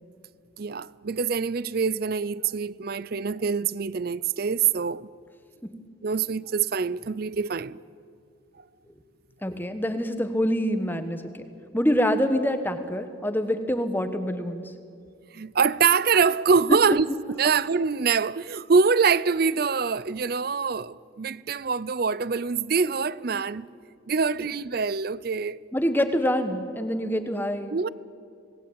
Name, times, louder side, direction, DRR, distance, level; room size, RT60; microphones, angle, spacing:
voice 1, 0.6-5.1 6.0-7.8 15.3-23.7 24.1-25.6 27.7-27.9, right 5 dB, 50° right, 0.5 m, -24 dB
voice 2, 9.4-11.5 11.7-14.7 23.3-23.4 25.7-27.8, equal, 10° left, 1.2 m, -26 dB
26.5 x 18.5 x 8.7 m
head